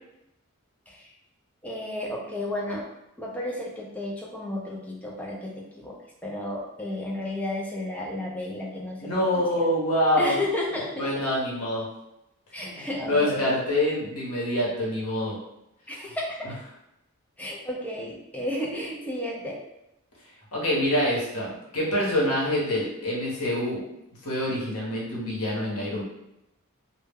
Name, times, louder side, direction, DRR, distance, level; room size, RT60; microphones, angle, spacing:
voice 1, 1.6-2.8 3.2-6.0 6.2-9.4 10.2-11.1 12.5-13.5 15.9-16.5 17.4-19.6, left 1 dB, 5° left, -2 dB, 0.3 m, -32 dB
voice 2, 9.0-10.4 11.0-11.8 12.6-15.4 16.4-16.5 20.5-23.8 24.2-26.0, left 1 dB, 85° left, -4 dB, 0.9 m, -26 dB
2.1 x 2.1 x 3.3 m, 0.87 s
head